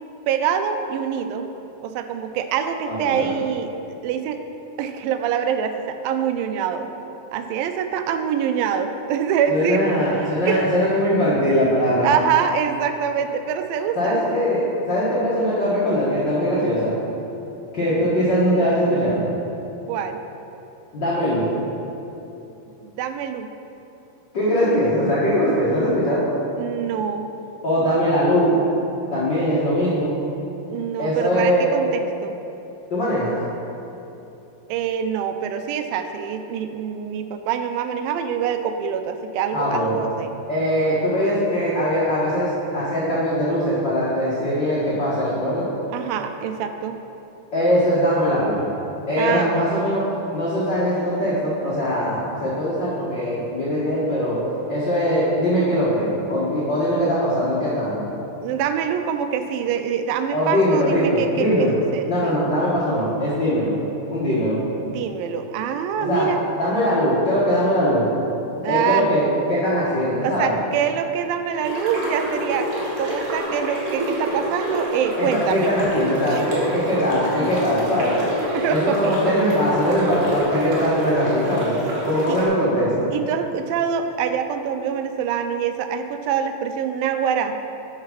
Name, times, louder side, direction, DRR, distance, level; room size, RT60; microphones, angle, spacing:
voice 1, 0.3-1.5 1.8-4.4 4.8-6.9 7.3-9.8 10.5-10.6 12.0-14.2 19.9-20.2 22.8-23.5 26.6-27.3 30.7-32.4 34.7-40.3 45.9-47.0 49.2-49.6 58.4-62.4 64.8-66.4 68.6-69.1 70.2-72.7 73.0-75.7 76.3-76.6 78.5-79.3 80.4-80.5 82.3-82.4 83.1-87.6, right 8 dB, 90° right, 8 dB, 2.3 m, -25 dB
voice 2, 2.9-3.3 9.5-12.1 13.9-16.9 17.7-19.2 20.9-21.5 24.3-26.2 27.6-28.6 29.1-30.1 31.0-31.7 32.9-33.3 39.5-40.0 40.5-45.7 47.5-48.7 49.1-50.0 50.3-54.4 54.7-58.0 60.3-61.7 62.1-63.7 64.1-64.6 66.0-66.3 66.6-68.0 68.7-70.6 75.2-78.2 78.7-81.7 82.0-83.1, equal, 55° left, -9 dB, 1.2 m, -21 dB
sound 1, 71.6-82.5, equal, 65° right, 3.2 m, -27 dB
9.6 x 4.7 x 5.8 m, 2.9 s
omnidirectional pair, 4.0 m